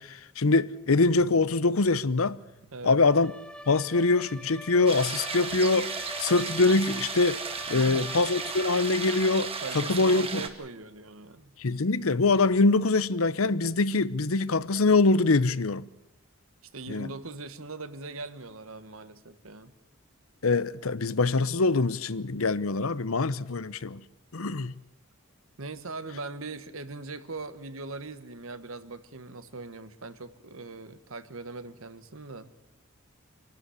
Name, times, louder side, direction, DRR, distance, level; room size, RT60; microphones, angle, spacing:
voice 1, 0.0-2.4 2.8-3.3 3.7-5.9 6.2-7.4 7.7-10.4 11.6-15.9 16.9-17.1 20.4-24.0 24.3-24.7, left 3 dB, 85° left, 0.8 m, -24 dB
sound 1, 1.1-7.3, right 4 dB, 65° left, 3.8 m, -61 dB
Bowed string instrument, 3.0-10.1, equal, 5° left, 1.0 m, -45 dB
sound 2, 4.9-10.5, right 5 dB, 30° right, 2.0 m, -35 dB
voice 2, 7.7-8.1 9.6-11.5 16.7-19.7 25.6-32.5, right 3 dB, 80° right, 1.5 m, -40 dB
26.0 x 12.0 x 9.8 m
head